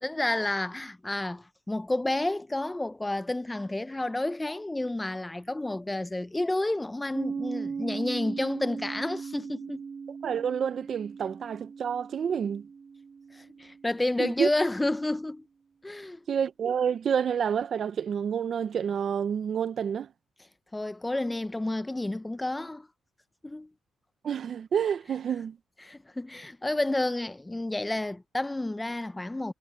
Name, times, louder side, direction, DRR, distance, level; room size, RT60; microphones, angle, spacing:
voice 1, 0.0-9.8 13.3-15.5 15.8-16.2 20.7-22.9 23.4-23.7 25.8-29.5, left 2 dB, 10° left, 0.5 m, -30 dB
Piano, 7.1-14.4, right 5 dB, 40° right, 7.0 m, -38 dB
voice 2, 10.2-12.7 14.2-14.5 16.3-20.1 24.2-25.6, right 7 dB, 55° right, 0.7 m, -29 dB
cardioid pair, 110°, 0 cm